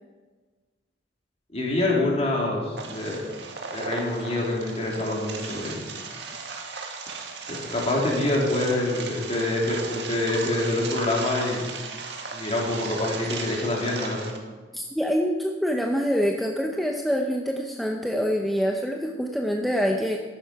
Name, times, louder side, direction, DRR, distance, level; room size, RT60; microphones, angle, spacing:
voice 1, 1.5-3.2 3.7-5.8 7.5-11.6 12.3-14.2, left 2 dB, 35° left, -3 dB, 3.6 m, -26 dB
sound 1, 2.8-14.4, right 4 dB, 65° right, 2.0 m, -36 dB
voice 2, 14.7-20.2, equal, ahead, 0 dB, 0.8 m, -25 dB
14.5 x 11.0 x 5.9 m, 1.4 s
head